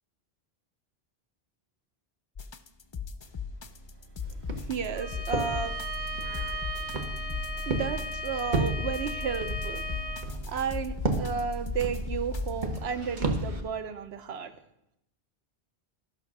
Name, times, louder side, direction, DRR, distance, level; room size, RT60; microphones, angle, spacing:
sound 1, 2.4-12.9, left 3 dB, 40° left, 0.4 m, -37 dB
Walk footsteps, 4.2-13.6, right 2 dB, 45° right, 1.1 m, -34 dB
voice 1, 4.5-5.8 6.2-6.7 7.7-9.8 10.5-14.5, right 6 dB, 75° right, 10 dB, 1.0 m, -33 dB
Bowed string instrument, 4.9-10.3, equal, 10° left, 0.8 m, -37 dB
12.5 x 6.1 x 5.9 m, 0.81 s
omnidirectional pair, 1.1 m